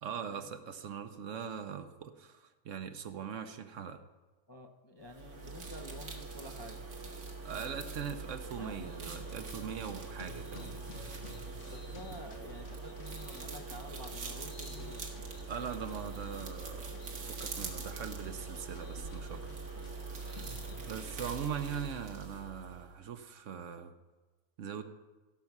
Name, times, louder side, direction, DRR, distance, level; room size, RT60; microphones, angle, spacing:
voice 1, 0.0-4.0 7.4-10.8 15.5-19.5 20.1-20.6 20.8-23.9 24.6-24.8, right 7 dB, 65° right, 9 dB, 1.0 m, -41 dB
voice 2, 4.5-6.9 8.6-8.9 10.6-10.9 11.7-15.0 20.4-20.7, left 1 dB, 30° left, 3 dB, 0.5 m, -49 dB
sound 1, 5.0-22.9, right 4 dB, 85° right, 2.0 m, -43 dB
sound 2, 8.8-20.9, left 3 dB, 60° left, 1.3 m, -53 dB
16.5 x 6.8 x 6.0 m, 1.2 s
omnidirectional pair, 1.5 m